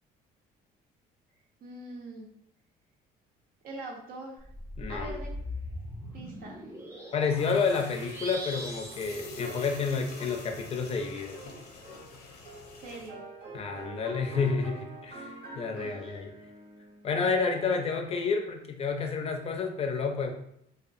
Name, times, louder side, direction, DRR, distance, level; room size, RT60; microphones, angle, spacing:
voice 1, 1.6-2.3 3.6-4.5 4.9-5.3 6.1-6.6 12.8-13.3 15.7-16.0, right 2 dB, 60° right, 0 dB, 0.5 m, -43 dB
sound 1, 4.4-10.2, left 1 dB, 15° right, 0.6 m, -41 dB
voice 2, 4.8-5.2 7.1-11.5 13.5-16.3 17.0-20.3, left 5 dB, 35° left, 4 dB, 0.4 m, -30 dB
sound 2, 7.4-13.1, left 3 dB, 85° left, 0.6 m, -46 dB
sound 3, 8.4-18.5, right 3 dB, 85° right, 0.8 m, -46 dB
2.6 x 2.3 x 2.5 m, 0.72 s
cardioid pair, 110°, 17 cm